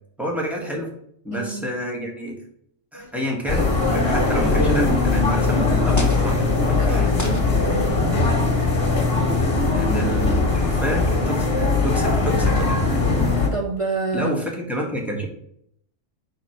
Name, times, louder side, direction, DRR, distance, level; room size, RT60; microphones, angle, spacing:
voice 1, 0.2-0.9 1.2-2.3 2.9-7.1 9.7-11.5 11.8-12.8 14.1-15.3, equal, ahead, -2 dB, 1.4 m, -29 dB
voice 2, 1.3-1.7 6.8-8.2 13.2-14.4, right 4 dB, 40° right, 1 dB, 0.5 m, -29 dB
sound 1, 2.9-3.9 4.8-4.9 5.9-6.3 7.1-7.7 8.5-8.7, left 2 dB, 20° left, 0.6 m, -35 dB
sound 2, 3.5-13.5, left 3 dB, 50° left, 1.6 m, -20 dB
4.4 x 4.1 x 5.7 m, 0.70 s
omnidirectional pair, 1.3 m